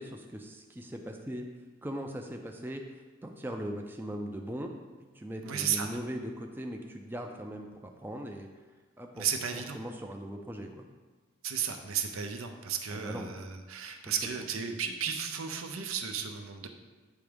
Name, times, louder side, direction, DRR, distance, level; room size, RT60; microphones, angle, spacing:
voice 1, 0.0-1.5 1.8-2.8 3.2-4.7 5.0-8.5 9.0-9.3 9.5-10.9 12.9-13.3 14.1-14.2 14.7-14.8, equal, 10° right, 2 dB, 0.4 m, -39 dB
voice 2, 5.4-5.9 9.1-9.8 11.4-16.7, right 7 dB, 85° right, 5 dB, 0.7 m, -34 dB
8.3 x 3.5 x 5.1 m, 1.3 s
head